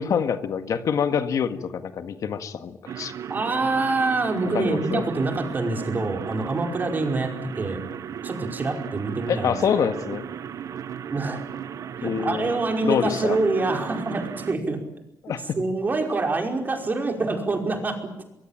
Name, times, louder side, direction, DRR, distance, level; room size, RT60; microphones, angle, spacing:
voice 1, 0.0-3.1 4.5-5.0 9.3-10.3 12.0-12.6 12.8-13.4 15.2-15.6, left 7 dB, 65° left, 9 dB, 1.8 m, -26 dB
sound 1, 2.8-14.5, right 8 dB, 65° right, 1.1 m, -36 dB
voice 2, 3.3-7.8 8.2-9.6 11.1-11.5 12.0-14.8 15.6-18.2, right 3 dB, 30° right, 3 dB, 5.1 m, -26 dB
24.5 x 23.0 x 8.9 m, 0.83 s
wide cardioid pair, 140°, 6 cm